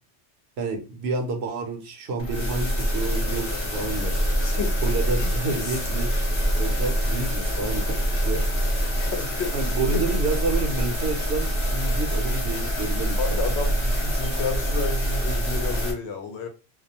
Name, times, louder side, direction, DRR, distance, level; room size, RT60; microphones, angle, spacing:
voice 1, 0.6-4.2 4.8-6.1 6.6-8.4 9.5-13.4, right 3 dB, 65° right, 3 dB, 0.8 m, -29 dB
sound 1, 2.2-15.9, equal, 30° left, 0.7 m, -25 dB
voice 2, 4.4-4.8 5.2-5.8 9.0-9.7 13.2-16.5, left 4 dB, 70° left, 5 dB, 0.9 m, -31 dB
2.4 x 2.1 x 2.7 m, 0.32 s
omnidirectional pair, 1.2 m